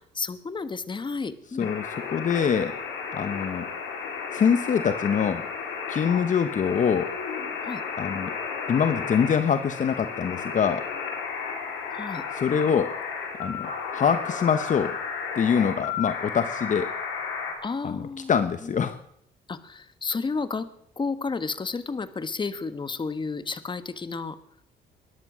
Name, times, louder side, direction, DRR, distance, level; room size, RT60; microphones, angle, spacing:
voice 1, 0.1-1.7 7.6-7.8 11.9-12.2 17.6-18.3 18.6-18.7 19.5-20.7 21.0-24.4, left 4 dB, 25° left, 13 dB, 1.3 m, -31 dB
sound 1, 1.6-17.5, left 5 dB, 90° left, 4.1 m, -33 dB
voice 2, 1.6-2.7 3.1-3.7 4.3-5.5 5.9-7.1 8.0-8.3 8.7-10.8 12.3-12.9 13.4-15.0 15.3-16.9 17.8-19.0, left 7 dB, 45° left, 11 dB, 1.0 m, -24 dB
21.5 x 10.5 x 6.2 m, 0.72 s
cardioid pair, 90°, 18 cm